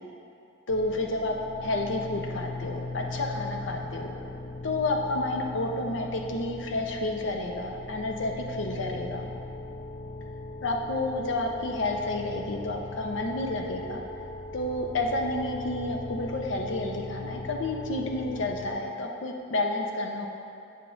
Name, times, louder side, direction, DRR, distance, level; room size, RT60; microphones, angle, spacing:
voice 1, 0.7-1.3 1.6-4.1 4.6-9.3 10.6-14.0 14.5-20.3, left 2 dB, 80° left, 2 dB, 0.7 m, -30 dB
sound 1, 0.7-18.7, left 3 dB, 35° left, 0.4 m, -39 dB
8.2 x 6.8 x 2.5 m, 2.7 s
head